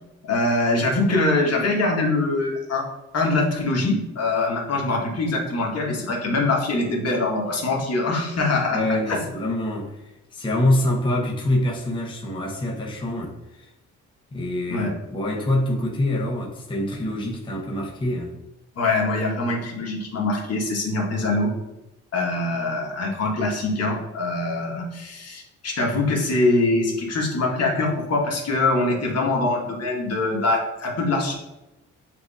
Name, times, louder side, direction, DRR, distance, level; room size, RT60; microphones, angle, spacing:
voice 1, 0.2-2.9 3.1-9.2 14.7-14.9 18.8-21.5 22.1-31.3, left 2 dB, 55° left, -2 dB, 1.3 m, -23 dB
voice 2, 8.7-13.7 14.3-18.4, left 1 dB, 15° left, -2 dB, 0.8 m, -25 dB
7.5 x 2.6 x 2.4 m, 0.96 s
cardioid pair, 90°, 30 cm